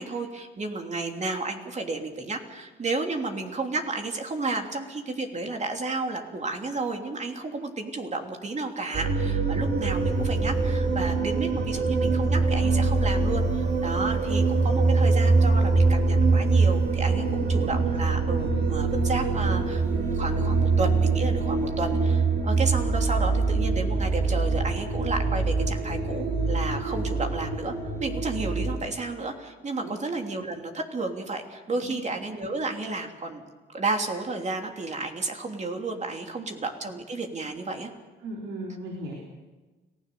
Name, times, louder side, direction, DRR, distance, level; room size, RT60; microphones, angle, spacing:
voice 1, 0.0-33.4 33.7-37.9, right 3 dB, 35° right, 3 dB, 3.1 m, -32 dB
sound 1, 8.9-28.8, right 3 dB, 55° right, 6.6 m, -24 dB
voice 2, 38.2-39.1, right 1 dB, 85° right, -1 dB, 4.3 m, -36 dB
29.5 x 16.5 x 6.9 m, 1.2 s
cardioid pair, 90°, 20 cm